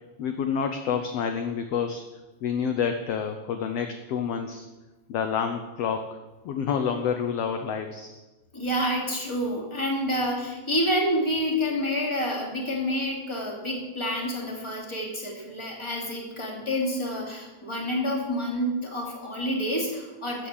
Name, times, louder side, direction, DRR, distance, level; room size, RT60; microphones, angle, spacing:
voice 1, 0.2-2.0 2.4-4.7 5.1-6.2 6.4-8.2, left 7 dB, 70° left, 6 dB, 1.5 m, -28 dB
voice 2, 8.5-20.5, equal, 10° left, -1 dB, 2.5 m, -28 dB
13.0 x 9.0 x 7.2 m, 1.1 s
omnidirectional pair, 3.7 m